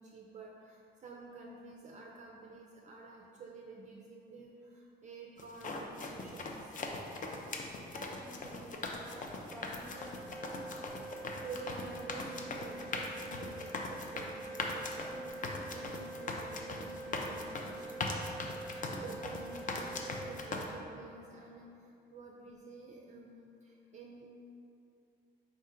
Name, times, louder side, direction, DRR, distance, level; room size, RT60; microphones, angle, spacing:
voice 1, 0.0-6.7 11.4-24.3, right 3 dB, 35° right, -2 dB, 0.4 m, -49 dB
sound 1, 5.4-20.6, left 3 dB, 40° left, 0.5 m, -40 dB
voice 2, 7.9-10.4, equal, ahead, -2 dB, 0.8 m, -51 dB
Organ, 9.9-21.0, right 2 dB, 20° left, 0.9 m, -46 dB
4.6 x 2.4 x 4.3 m, 2.6 s
cardioid pair, 90°, 20 cm